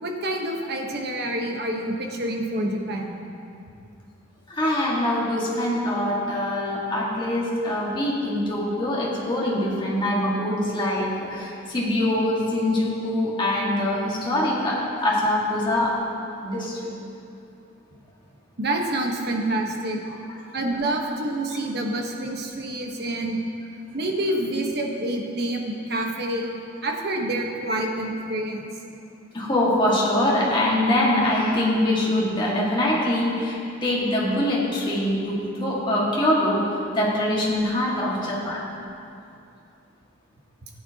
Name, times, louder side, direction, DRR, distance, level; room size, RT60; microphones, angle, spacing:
voice 1, 0.0-3.1 18.6-20.0 20.5-23.4 23.9-28.7, right 1 dB, 55° right, 1 dB, 1.1 m, -27 dB
voice 2, 4.5-16.0 16.4-16.9 21.5-21.6 29.3-38.6, left 1 dB, 25° left, -5 dB, 1.8 m, -23 dB
15.0 x 9.2 x 2.9 m, 2.6 s
head